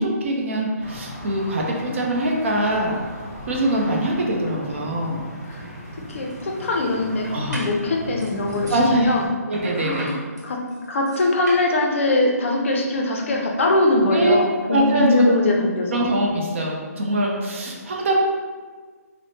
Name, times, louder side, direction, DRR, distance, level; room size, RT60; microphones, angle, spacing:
voice 1, 0.0-3.0 3.5-5.2 7.3-7.6 8.7-9.1 9.5-10.1 14.1-14.4 14.7-15.4 15.9-18.2, right 1 dB, 50° right, -1 dB, 0.5 m, -23 dB
sound 1, 0.8-9.3, equal, 20° right, 0.8 m, -37 dB
sound 2, 5.6-5.7 6.1-6.7 7.2-7.8 8.2-8.8 9.5-11.7, right 1 dB, 85° right, 1.0 m, -37 dB
voice 2, 6.1-9.3 9.7-10.6 10.9-16.1, left 2 dB, 50° left, 1 dB, 0.4 m, -22 dB
3.1 x 2.0 x 2.8 m, 1.5 s
hypercardioid pair, 165°, 9 cm